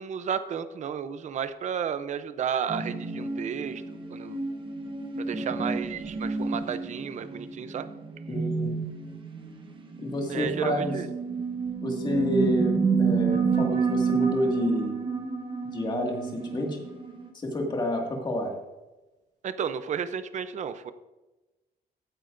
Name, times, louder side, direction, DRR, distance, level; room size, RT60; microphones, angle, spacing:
voice 1, 0.0-3.8 4.1-4.4 5.2-7.9 10.3-11.1 19.4-20.9, right 7 dB, 50° right, 12 dB, 0.6 m, -32 dB
sound 1, 2.7-17.3, right 5 dB, 30° right, 1.1 m, -29 dB
voice 2, 8.3-8.7 10.0-11.0 11.8-15.0 15.6-16.8 17.3-18.5, left 1 dB, 25° left, 1 dB, 2.0 m, -29 dB
15.5 x 9.6 x 2.6 m, 1.1 s
wide cardioid pair, 175°, 16 cm